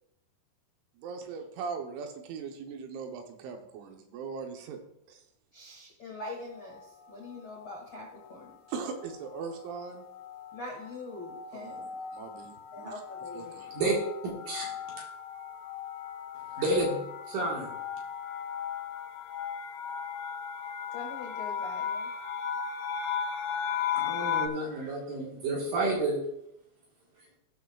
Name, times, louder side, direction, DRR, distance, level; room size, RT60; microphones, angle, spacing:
voice 1, 1.0-4.8 5.1-5.3 8.7-10.0 11.5-11.7 12.1-12.9 13.3-13.7, right 5 dB, 80° right, 4 dB, 3.3 m, -39 dB
voice 2, 5.5-8.5 10.5-12.0 12.7-13.7 20.9-22.1, left 2 dB, 55° left, -2 dB, 1.3 m, -43 dB
sound 1, 6.3-6.8 7.6-7.9 8.2-8.5 8.7-24.5, left 8 dB, 80° left, 2.9 m, -37 dB
voice 3, 14.2-15.0 16.5-17.0 17.3-17.8 24.0-26.2, right 2 dB, 60° right, -2 dB, 2.5 m, -30 dB
17.5 x 6.5 x 2.4 m, 0.82 s
omnidirectional pair, 5.4 m